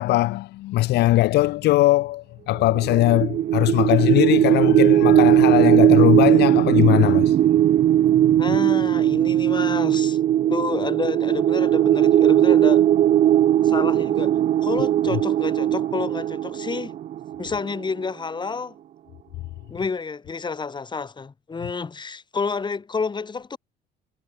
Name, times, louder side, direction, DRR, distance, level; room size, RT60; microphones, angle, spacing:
voice 1, 0.0-7.4 15.1-15.2, left 17 dB, 80° left, 1.3 m, -20 dB
sound 1, 2.7-17.7, right 11 dB, 45° right, 0.5 m, -18 dB
voice 2, 8.4-10.2 10.5-12.9 13.6-14.3 14.6-17.0 17.4-18.7 19.7-23.6, left 4 dB, 25° left, 6.2 m, -29 dB
cardioid pair, 110°, 17 cm